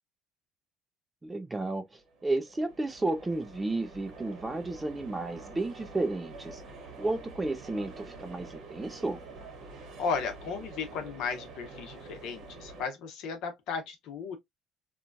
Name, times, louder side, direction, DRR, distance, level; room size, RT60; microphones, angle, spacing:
voice 1, 1.2-1.9 2.2-6.6 7.0-9.2, right 2 dB, 15° right, 0.5 m, -32 dB
sound 1, 1.9-12.8, right 3 dB, 65° right, 1.3 m, -47 dB
voice 2, 10.0-14.4, left 5 dB, 75° left, 1.0 m, -35 dB
3.0 x 2.3 x 2.6 m
cardioid pair, 140°, 0 cm